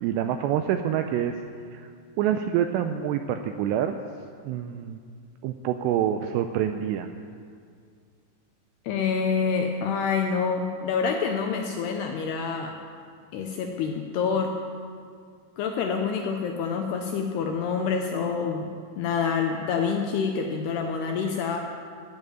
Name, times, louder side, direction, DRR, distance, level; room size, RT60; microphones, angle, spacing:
voice 1, 0.0-1.3 1.7-1.9 2.2-4.0 4.4-5.0 5.4-7.1, right 10 dB, 85° right, 7 dB, 2.5 m, -26 dB
voice 2, 8.9-12.7 13.3-14.6 15.6-18.7 19.0-21.6, left 5 dB, 85° left, 3 dB, 2.4 m, -27 dB
15.5 x 7.3 x 9.1 m, 2.2 s
omnidirectional pair, 5.5 m